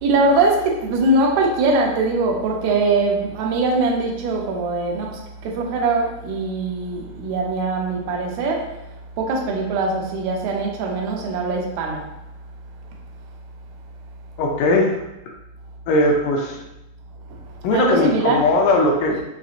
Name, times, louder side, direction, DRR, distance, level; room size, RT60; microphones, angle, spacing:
voice 1, 0.0-12.1 17.3-18.5, right 3 dB, 75° right, -1 dB, 1.7 m, -22 dB
voice 2, 14.4-15.0 15.9-16.6 17.6-19.2, left 2 dB, 80° left, 0 dB, 1.9 m, -19 dB
5.9 x 2.7 x 2.5 m, 0.94 s
omnidirectional pair, 4.0 m